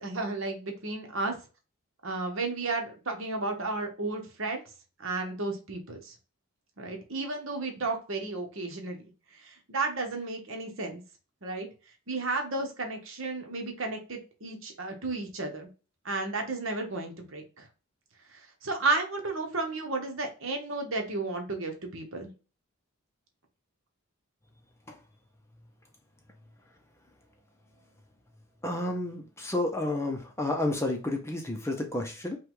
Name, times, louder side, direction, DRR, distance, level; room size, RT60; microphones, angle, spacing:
voice 1, 0.0-1.4 2.0-4.6 5.0-6.1 6.8-9.0 9.4-11.0 11.4-11.7 12.1-15.7 16.0-17.6 18.6-22.3, right 3 dB, 60° right, 3 dB, 1.1 m, -33 dB
voice 2, 28.6-32.4, left 1 dB, 10° left, 3 dB, 0.6 m, -31 dB
5.5 x 2.3 x 3.8 m, 0.33 s
head